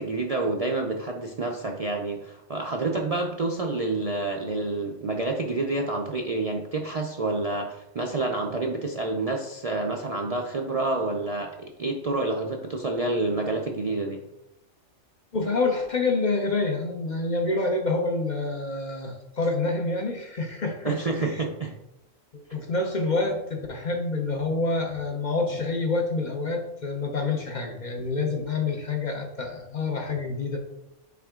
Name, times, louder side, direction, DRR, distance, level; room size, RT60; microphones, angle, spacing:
voice 1, 0.0-14.2 20.8-21.7, right 2 dB, 45° right, 1 dB, 0.5 m, -28 dB
voice 2, 15.3-21.4 22.3-30.6, left 3 dB, 45° left, 3 dB, 0.8 m, -27 dB
5.8 x 5.0 x 3.6 m, 0.89 s
omnidirectional pair, 1.2 m